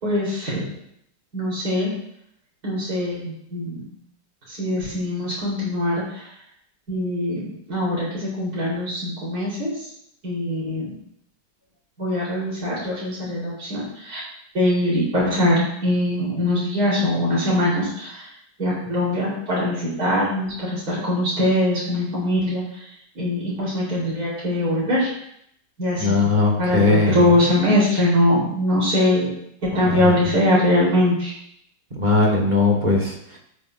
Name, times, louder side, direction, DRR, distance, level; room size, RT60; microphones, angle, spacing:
voice 1, 0.0-0.6 1.3-1.9 2.6-3.8 4.5-6.3 6.9-9.8 10.2-10.9 12.0-14.2 14.5-18.3 18.6-22.8 23.1-25.1 25.8-26.3 26.6-29.3 29.6-31.3, left 1 dB, 55° right, -8 dB, 4.6 m, -22 dB
voice 2, 26.0-27.3 29.7-30.2 31.9-33.4, left 3 dB, 30° right, 0 dB, 1.4 m, -20 dB
13.0 x 7.3 x 2.6 m, 0.72 s
omnidirectional pair, 1.9 m